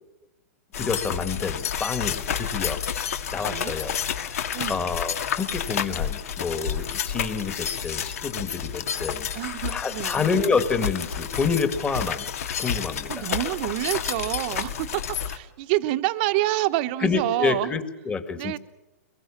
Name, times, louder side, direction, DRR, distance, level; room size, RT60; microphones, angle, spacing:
sound 1, 0.7-15.4, left 8 dB, 70° left, 2.1 m, -30 dB
voice 1, 0.7-2.8 3.3-9.3 9.7-12.3 12.6-13.3 17.0-18.6, left 5 dB, 15° left, 9 dB, 1.9 m, -28 dB
voice 2, 4.5-4.9 9.3-10.2 13.1-17.8 18.4-18.6, right 17 dB, 40° right, 12 dB, 1.1 m, -27 dB
23.5 x 21.5 x 7.2 m, 0.97 s
hypercardioid pair, 150°, 8 cm